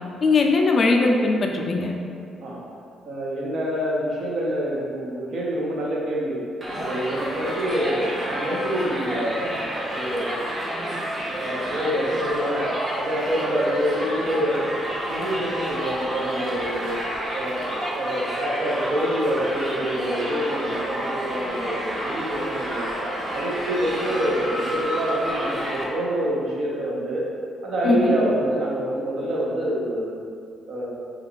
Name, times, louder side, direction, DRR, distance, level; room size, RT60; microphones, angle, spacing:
voice 1, 0.2-1.9 27.8-28.2, left 3 dB, 45° left, 2 dB, 0.3 m, -19 dB
voice 2, 3.1-6.4 6.8-10.4 10.8-10.9 11.4-14.6 15.1-16.9 17.3-17.6 17.9-22.9 23.3-27.3 27.6-30.1 30.7-30.9, equal, 70° right, -5 dB, 0.7 m, -26 dB
Crowd, 6.6-25.8, equal, 30° right, 0.6 m, -29 dB
2.3 x 2.3 x 3.5 m, 2.3 s
cardioid pair, 90°, 0 cm